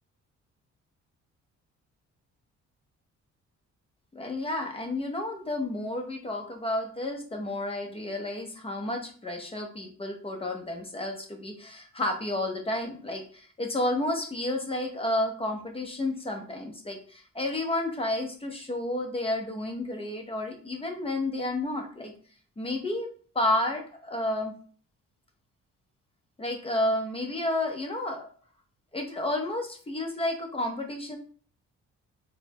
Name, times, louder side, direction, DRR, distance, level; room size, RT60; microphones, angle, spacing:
voice 1, 4.1-22.1 22.6-23.1 23.3-24.5 26.4-28.3 28.9-31.2, left 1 dB, 20° left, 3 dB, 0.8 m, -31 dB
3.8 x 2.2 x 3.0 m, 0.43 s
cardioid pair, 90°, 30 cm